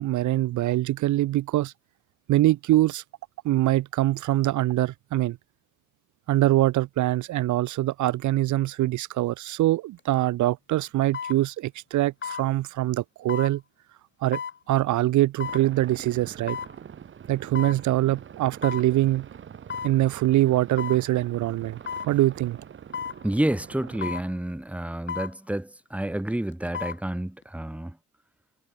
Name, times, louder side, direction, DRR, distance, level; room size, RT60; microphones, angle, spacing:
voice 1, 0.0-1.7 2.3-3.0 3.4-5.4 6.3-13.6 14.2-14.4 14.7-16.6 17.3-19.3 19.8-21.8 22.1-22.6, right 15 dB, 60° right, 0.9 m, -23 dB
sound 1, 10.0-10.1 11.1-11.4 12.2-12.5 13.3-13.5 14.3-14.6 15.4-15.6 16.5-16.7 17.6-17.8 18.6-18.9 19.7-20.0 20.8-21.0 21.9-22.1 22.9-23.2 24.0-24.3 25.1-25.3 26.5-27.0 27.4-27.5, left 7 dB, 35° left, 1.9 m, -33 dB
sound 2, 15.4-24.2, right 8 dB, 35° right, 1.1 m, -44 dB
voice 2, 23.2-28.0, right 1 dB, 5° right, 1.7 m, -29 dB
supercardioid pair, 85°, 33 cm